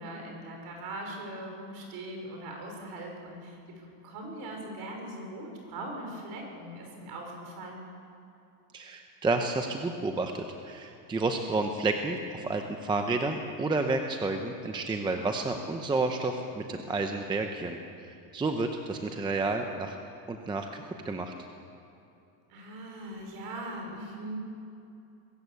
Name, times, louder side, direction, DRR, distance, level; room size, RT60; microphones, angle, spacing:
voice 1, 0.0-7.9 22.5-24.5, right 1 dB, 50° right, 1 dB, 5.6 m, -40 dB
voice 2, 8.7-20.0 20.3-21.3, right 3 dB, 10° right, 5 dB, 0.7 m, -31 dB
22.0 x 14.0 x 8.3 m, 2.7 s
cardioid pair, 165°, 47 cm